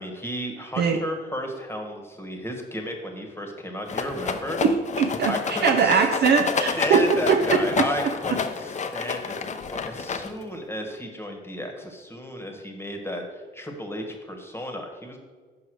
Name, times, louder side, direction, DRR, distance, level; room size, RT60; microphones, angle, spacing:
voice 1, 0.0-4.6 5.3-6.1 6.7-9.4 9.7-15.2, left 1 dB, 10° left, 3 dB, 1.3 m, -33 dB
Rattle, 3.9-10.6, left 5 dB, 35° left, 0.6 m, -29 dB
voice 2, 4.6-7.8, right 5 dB, 55° right, 4 dB, 0.6 m, -21 dB
5.3 x 4.9 x 6.2 m, 1.5 s
cardioid pair, 90°, 20 cm